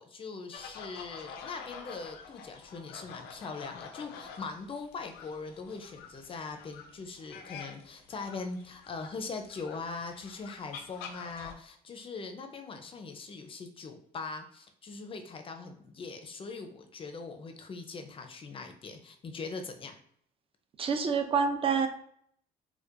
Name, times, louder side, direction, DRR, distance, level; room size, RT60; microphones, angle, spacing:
voice 1, 0.0-19.9, left 4 dB, 30° left, 6 dB, 0.5 m, -41 dB
sound 1, 0.5-11.5, left 6 dB, 90° left, 0.5 m, -48 dB
voice 2, 20.8-21.9, right 5 dB, 35° right, 7 dB, 0.5 m, -27 dB
4.4 x 2.2 x 2.5 m, 0.65 s
cardioid pair, 110°, 17 cm